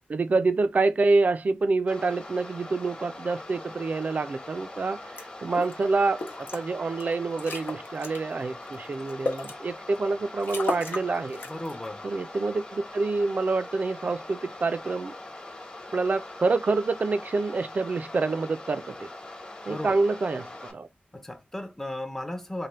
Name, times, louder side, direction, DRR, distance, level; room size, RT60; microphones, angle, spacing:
voice 1, 0.1-11.4 12.0-15.1 15.9-19.1 19.7-20.9, right 3 dB, 50° right, 0.4 m, -27 dB
sound 1, 1.9-20.7, left 2 dB, 30° left, 1.2 m, -42 dB
sound 2, 5.2-5.3 5.5-5.8 6.2-6.6 7.0-7.1 7.4-8.2 8.7-9.5 10.0-10.1 10.4-11.1 11.3-11.8, left 3 dB, 80° left, 1.0 m, -33 dB
voice 2, 11.4-12.0 19.7-20.0 21.1-22.7, left 1 dB, 15° left, 0.6 m, -35 dB
3.3 x 2.2 x 4.1 m
wide cardioid pair, 105°, 3 cm